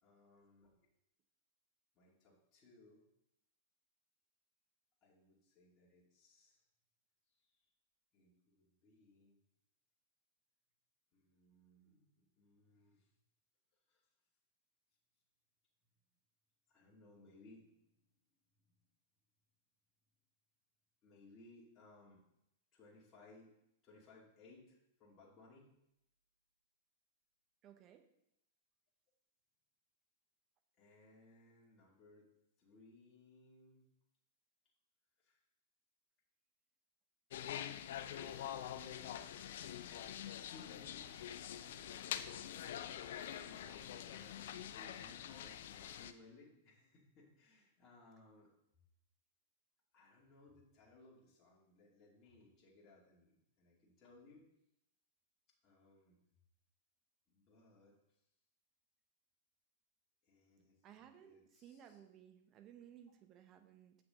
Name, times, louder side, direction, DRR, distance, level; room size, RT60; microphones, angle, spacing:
voice 1, 0.0-0.7 1.9-3.0 5.0-6.6 7.3-7.6 8.1-9.4 11.1-13.1 13.9-14.0 16.7-17.7 18.0-18.1 21.0-22.2 22.7-23.5 23.8-25.7 30.8-32.3 32.6-33.8 35.2-35.4 37.5-39.4 40.0-42.2 42.4-48.5 49.9-54.4 55.6-56.2 57.3-58.2 60.2-62.0, left 2 dB, 35° left, -5 dB, 2.4 m, -63 dB
voice 2, 27.6-28.0 60.8-64.0, right 9 dB, 35° right, 6 dB, 1.1 m, -59 dB
sound 1, 37.3-46.1, left 10 dB, 65° left, 0.5 m, -45 dB
7.5 x 6.1 x 3.8 m, 0.79 s
hypercardioid pair, 110°, 0 cm